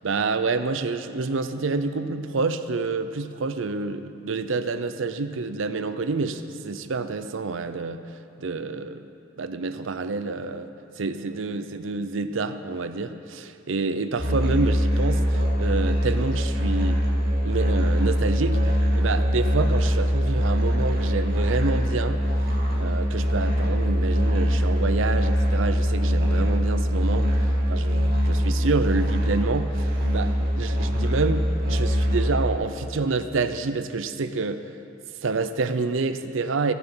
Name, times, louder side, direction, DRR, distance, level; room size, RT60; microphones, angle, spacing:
voice 1, 0.0-8.0 8.4-9.1 9.4-10.7 11.0-17.0 17.4-22.3 22.8-34.7 35.2-36.7, right 3 dB, 80° right, 10 dB, 0.6 m, -28 dB
Musical instrument, 14.2-32.6, equal, 50° right, 2.1 m, -23 dB
14.5 x 8.1 x 5.6 m, 2.5 s
head